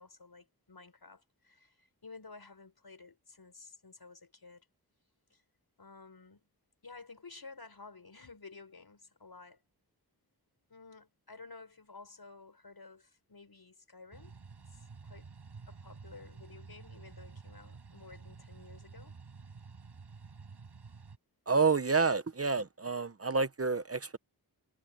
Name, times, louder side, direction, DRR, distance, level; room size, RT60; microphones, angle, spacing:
voice 1, 0.0-4.7 5.3-5.4 5.8-6.4 6.8-9.6 10.7-14.3 14.7-15.3 15.7-19.1, left 4 dB, 70° left, 5.4 m, -53 dB
sound 1, 14.1-21.2, right 4 dB, 85° right, 6.3 m, -51 dB
voice 2, 21.5-24.2, right 4 dB, 35° right, 0.9 m, -29 dB
wide cardioid pair, 65°, 39 cm